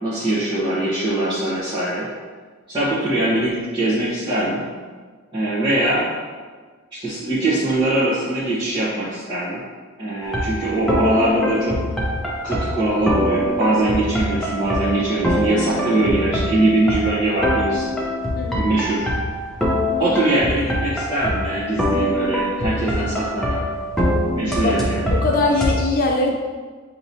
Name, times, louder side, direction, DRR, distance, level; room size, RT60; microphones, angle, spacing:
voice 1, 0.0-2.1 2.7-4.6 5.3-6.0 6.9-9.6 10.0-11.8 12.4-17.9 18.5-19.1 20.0-23.6 24.3-25.0, right 2 dB, 25° right, -12 dB, 1.0 m, -22 dB
sound 1, 10.2-25.7, left 1 dB, ahead, 0.7 m, -23 dB
voice 2, 18.4-18.7 24.6-24.8 25.1-26.3, left 3 dB, 45° left, 0 dB, 0.5 m, -21 dB
6.4 x 2.9 x 2.7 m, 1.5 s
head